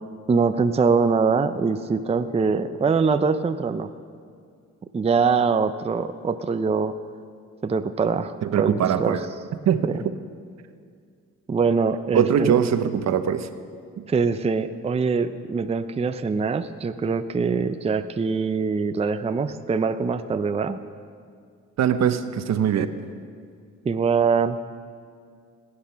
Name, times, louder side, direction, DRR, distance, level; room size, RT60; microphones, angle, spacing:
voice 1, 0.3-3.9 4.9-6.9 7.6-9.2 11.5-12.6 14.1-20.8 23.8-24.6, right 5 dB, 20° right, 9 dB, 0.5 m, -23 dB
voice 2, 8.4-9.3 9.7-9.8 12.1-13.5 14.0-14.1 21.8-22.9, right 8 dB, 60° right, 10 dB, 0.9 m, -22 dB
18.5 x 9.7 x 5.8 m, 2.2 s
cardioid pair, 90°, 30 cm